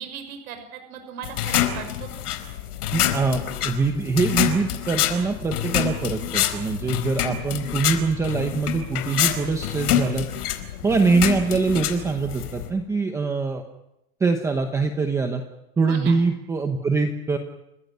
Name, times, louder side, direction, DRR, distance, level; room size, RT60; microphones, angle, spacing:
voice 1, 0.0-2.2 15.9-16.2, right 8 dB, 70° right, 7 dB, 6.0 m, -37 dB
sound 1, 1.2-12.7, left 11 dB, 75° left, 4.6 m, -26 dB
voice 2, 2.9-10.3 10.8-13.6 14.2-15.4 15.8-17.4, right 4 dB, 5° right, 5 dB, 0.9 m, -23 dB
30.0 x 16.0 x 9.5 m, 0.87 s
supercardioid pair, 180°, 45 cm